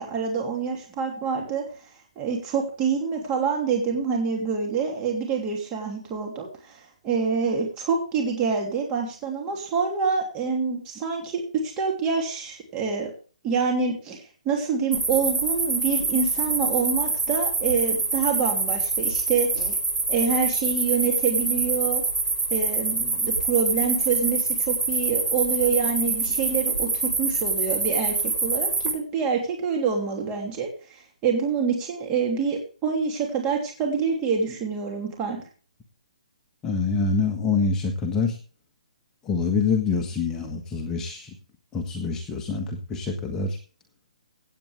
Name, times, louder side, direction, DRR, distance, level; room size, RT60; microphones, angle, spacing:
voice 1, 0.0-1.6 2.2-13.1 13.4-19.8 20.1-22.0 22.5-35.4, right 5 dB, 20° right, 1 dB, 3.1 m, -26 dB
sound 1, 14.9-28.9, right 3 dB, 85° right, 6.4 m, -26 dB
voice 2, 36.6-38.4 39.2-41.3 41.7-43.6, left 4 dB, 15° left, 3 dB, 1.5 m, -25 dB
16.5 x 9.0 x 3.5 m, 0.37 s
hypercardioid pair, 155°, 4 cm